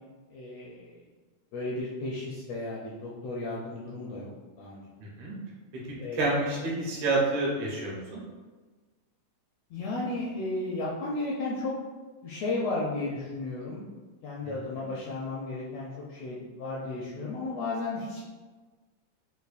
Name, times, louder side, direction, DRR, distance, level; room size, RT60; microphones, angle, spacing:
voice 1, 0.3-1.0 1.5-4.3 4.6-4.8 6.0-6.2 9.7-11.7 12.2-13.8 14.2-18.2, left 2 dB, 80° left, -5 dB, 1.5 m, -34 dB
voice 2, 5.0-5.3 6.1-8.2 14.4-14.6, right 2 dB, 75° right, -5 dB, 2.0 m, -28 dB
5.3 x 2.2 x 2.4 m, 1.3 s
omnidirectional pair, 3.4 m